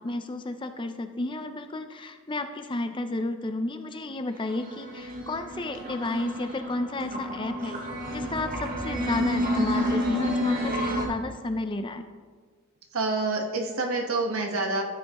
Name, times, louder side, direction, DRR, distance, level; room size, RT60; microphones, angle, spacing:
voice 1, 0.0-7.8 8.1-12.1, left 2 dB, 25° left, 8 dB, 0.5 m, -32 dB
sound 1, 4.3-11.1, equal, 40° right, 1.4 m, -30 dB
voice 2, 12.9-14.8, right 3 dB, 80° right, 2 dB, 1.3 m, -27 dB
13.0 x 7.7 x 3.0 m, 1.5 s
head